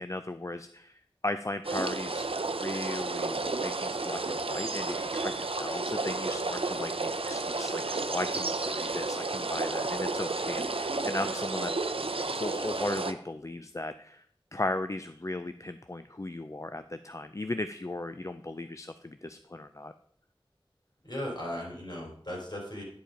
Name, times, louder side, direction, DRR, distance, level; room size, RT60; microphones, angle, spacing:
voice 1, 0.0-2.3 2.6-11.7 12.3-14.2 14.5-19.9, left 2 dB, 35° left, 10 dB, 0.4 m, -37 dB
sound 1, 1.6-13.1, right 3 dB, 85° right, 0.5 m, -32 dB
voice 2, 21.0-22.8, left 1 dB, 50° left, -2 dB, 3.6 m, -37 dB
10.0 x 5.1 x 5.1 m, 0.62 s
wide cardioid pair, 45°, 9 cm